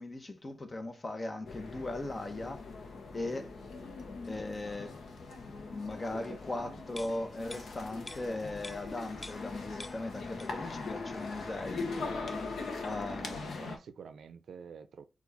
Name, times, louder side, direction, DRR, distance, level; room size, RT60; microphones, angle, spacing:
voice 1, 0.0-2.7 3.1-3.5 4.3-5.0 5.7-11.9 12.8-13.6, left 2 dB, 35° left, 0.9 m, -38 dB
sound 1, 1.5-13.8, left 3 dB, 80° left, 0.8 m, -41 dB
voice 2, 6.1-7.1 12.8-15.0, right 6 dB, 85° right, 0.4 m, -49 dB
sound 2, 7.0-9.5 9.8-10.8 11.1-11.2, left 1 dB, 20° left, 0.5 m, -49 dB
4.4 x 2.4 x 4.0 m
cardioid pair, 60°, 0 cm